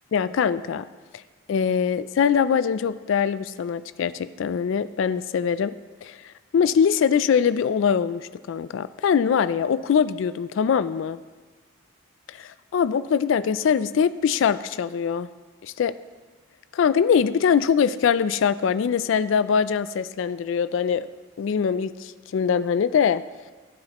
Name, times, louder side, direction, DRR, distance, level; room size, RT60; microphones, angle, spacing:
voice 1, 0.1-0.9 1.5-5.8 6.0-6.2 6.5-11.2 12.3-15.3 15.6-15.9 16.7-21.1 21.4-23.2, left 7 dB, 65° left, 14 dB, 0.3 m, -22 dB
15.5 x 8.7 x 3.0 m, 1.3 s
head